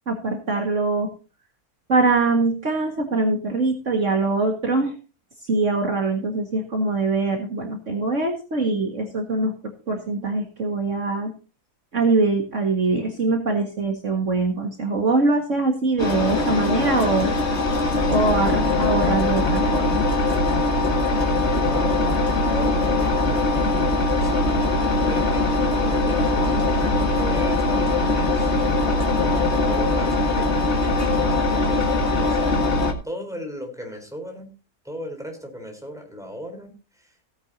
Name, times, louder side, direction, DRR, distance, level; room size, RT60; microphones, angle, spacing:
voice 1, 0.1-1.1 1.9-5.0 5.4-9.5 9.9-11.3 11.9-17.3 18.1-20.0, right 3 dB, 55° right, 2 dB, 2.1 m, -23 dB
Engine, 16.0-32.9, left 2 dB, 45° left, 1.9 m, -21 dB
voice 2, 21.6-22.1 22.4-24.6 24.9-28.5 28.9-30.6 31.0-34.5 34.8-37.2, equal, ahead, 3 dB, 3.9 m, -36 dB
17.0 x 9.4 x 2.7 m, 0.33 s
omnidirectional pair, 1.6 m